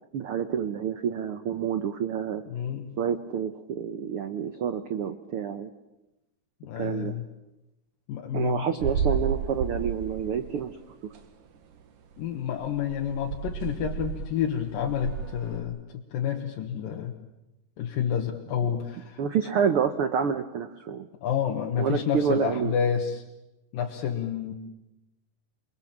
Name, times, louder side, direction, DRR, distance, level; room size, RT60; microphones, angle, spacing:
voice 1, 0.1-2.4 3.0-5.7 6.8-7.1 8.3-10.8 19.2-21.1 21.8-22.7, right 7 dB, 90° right, 9 dB, 1.2 m, -28 dB
voice 2, 2.5-2.9 6.6-7.3 8.1-8.7 12.2-15.8 16.1-17.1 17.8-19.2 21.2-23.2 23.7-24.5, left 8 dB, 80° left, 2 dB, 3.1 m, -29 dB
sound 1, 8.8-10.7 11.1-11.2 11.7-11.8 12.1-12.3 12.6-15.6, right 7 dB, 70° right, 3.0 m, -32 dB
28.5 x 21.5 x 7.4 m, 0.95 s
omnidirectional pair, 3.9 m